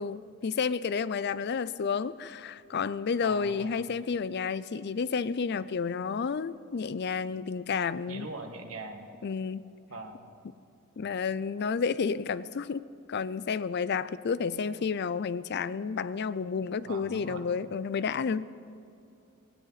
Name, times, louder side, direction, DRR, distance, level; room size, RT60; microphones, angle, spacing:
voice 1, 0.0-8.3 9.2-9.7 11.0-18.5, left 5 dB, 50° left, 0.4 m, -31 dB
voice 2, 3.2-3.7 8.1-9.1 9.9-10.3 16.8-17.4, right 2 dB, 70° right, 1.8 m, -41 dB
18.5 x 18.0 x 4.1 m
head